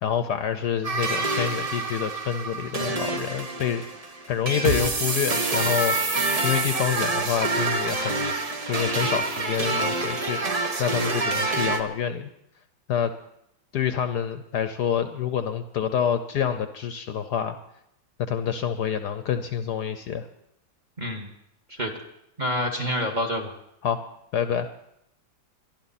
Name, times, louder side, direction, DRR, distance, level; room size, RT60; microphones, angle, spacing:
voice 1, 0.0-8.3 8.6-12.3 12.9-13.1 13.7-17.5 18.2-20.3 23.8-24.0 24.3-24.7, left 8 dB, 65° left, 10 dB, 1.1 m, -27 dB
sound 1, 0.8-11.8, right 3 dB, 45° right, 0.4 m, -27 dB
voice 2, 21.0-21.3 21.7-21.9 22.4-23.5, equal, 25° right, 3 dB, 1.5 m, -27 dB
22.5 x 12.0 x 4.2 m, 0.78 s
omnidirectional pair, 2.1 m